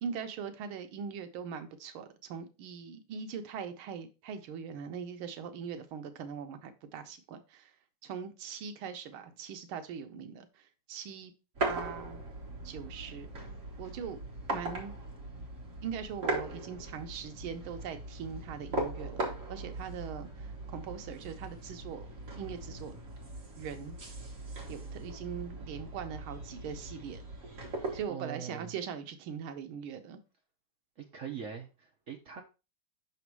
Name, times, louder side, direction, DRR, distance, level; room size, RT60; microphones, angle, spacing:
voice 1, 0.0-7.7 8.0-11.3 11.6-12.2 12.6-13.3 13.8-14.2 14.5-14.9 15.8-22.1 22.4-23.0 23.6-24.0 24.7-27.2 27.9-30.2, right 7 dB, 85° right, 1.6 m, -41 dB
sound 1, 11.5-28.1, right 2 dB, 40° right, 1.9 m, -39 dB
voice 2, 28.1-28.7 31.0-32.4, right 7 dB, 60° right, 0.8 m, -42 dB
5.9 x 4.1 x 4.6 m
omnidirectional pair, 2.2 m